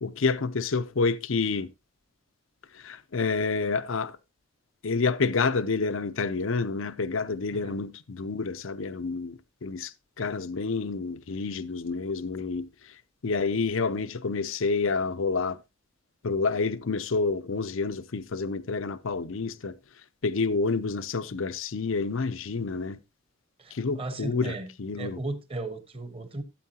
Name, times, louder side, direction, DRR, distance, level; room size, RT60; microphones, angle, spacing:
voice 1, 0.0-1.7 2.7-4.2 4.8-12.7 13.2-15.6 16.2-19.8 20.2-23.0 23.7-25.2, left 4 dB, 65° left, 0.6 m, -28 dB
voice 2, 23.6-24.7 25.0-26.4, right 2 dB, 25° right, 1.2 m, -36 dB
13.0 x 8.3 x 2.8 m
head